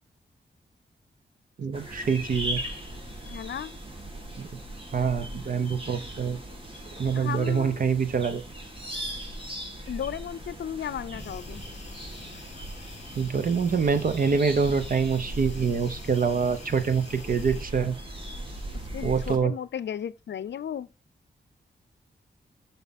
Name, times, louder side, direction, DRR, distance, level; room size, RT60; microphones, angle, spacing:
voice 1, 1.6-2.6 4.4-4.5 4.9-6.4 7.0-8.4 13.1-17.9 19.0-19.5, right 5 dB, 50° right, 0.9 m, -25 dB
sound 1, 1.7-19.4, right 1 dB, 30° right, 2.0 m, -39 dB
voice 2, 3.3-3.8 7.1-7.9 9.9-11.6 18.9-20.9, left 9 dB, 80° left, 0.5 m, -35 dB
sound 2, 11.2-17.7, left 4 dB, 40° left, 1.1 m, -46 dB
7.2 x 5.7 x 4.1 m
wide cardioid pair, 170°, 18 cm